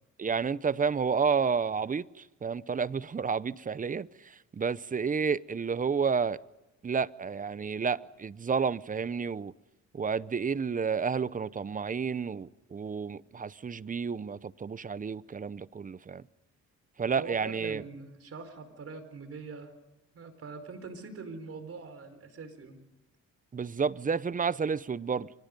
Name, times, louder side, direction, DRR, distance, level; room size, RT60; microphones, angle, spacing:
voice 1, 0.2-2.1 2.4-4.1 4.5-6.4 6.8-9.5 9.9-16.2 17.0-17.8 23.5-25.3, right 5 dB, 25° right, 0.7 m, -30 dB
voice 2, 17.2-19.7 20.1-22.9, right 4 dB, 50° right, 4.8 m, -43 dB
29.5 x 24.5 x 5.3 m
cardioid pair, 90°, 30 cm